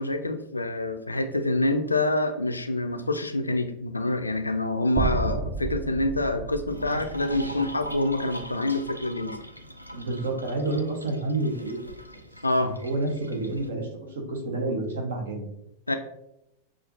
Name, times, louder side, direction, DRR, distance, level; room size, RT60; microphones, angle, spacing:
voice 1, 0.0-9.4 12.4-12.7 15.9-16.0, left 2 dB, 80° left, 7 dB, 0.4 m, -26 dB
sound 1, 5.0-9.1, right 3 dB, 25° right, 0.4 m, -33 dB
sound 2, 6.7-13.7, equal, 90° right, 0.4 m, -41 dB
voice 2, 9.9-11.9 12.6-15.5, right 2 dB, 65° right, 2 dB, 0.9 m, -29 dB
6.4 x 2.4 x 2.6 m, 0.83 s
figure-of-eight pair, 90°, 0 cm